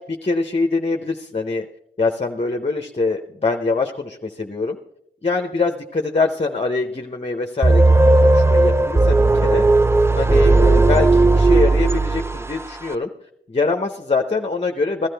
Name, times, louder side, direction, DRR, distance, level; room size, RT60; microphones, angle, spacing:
voice 1, 0.2-1.7 2.0-4.8 5.2-9.6 10.2-13.1 13.5-15.1, left 3 dB, 30° left, 5 dB, 0.8 m, -23 dB
sound 1, 7.6-12.6, right 2 dB, 15° right, 0.4 m, -15 dB
15.5 x 12.5 x 3.4 m, 0.76 s
cardioid pair, 60°, 20 cm